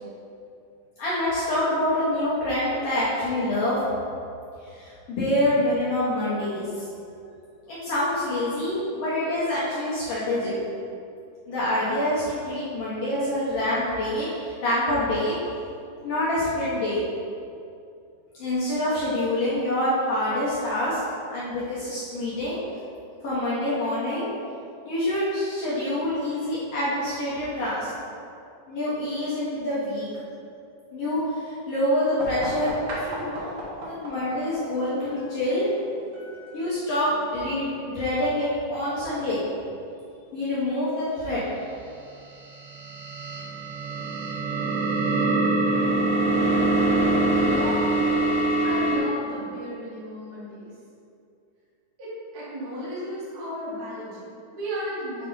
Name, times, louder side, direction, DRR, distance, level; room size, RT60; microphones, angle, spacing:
voice 1, 1.0-3.8 4.7-6.9 7.7-10.6 11.5-15.3 16.0-17.0 18.4-21.0 21.3-22.6 23.2-24.3 24.8-27.9 28.7-30.1 30.9-33.6 33.9-35.7 36.5-39.4 40.3-41.4, left 1 dB, 75° left, -9 dB, 1.3 m, -26 dB
sound 1, 32.2-37.7, right 1 dB, 80° right, 1.2 m, -38 dB
sound 2, 42.4-49.0, right 2 dB, 65° right, 1.5 m, -23 dB
voice 2, 47.3-47.9 48.6-50.7 52.0-55.3, equal, 45° right, -10 dB, 1.2 m, -34 dB
7.4 x 3.4 x 3.8 m, 2.5 s
omnidirectional pair, 4.1 m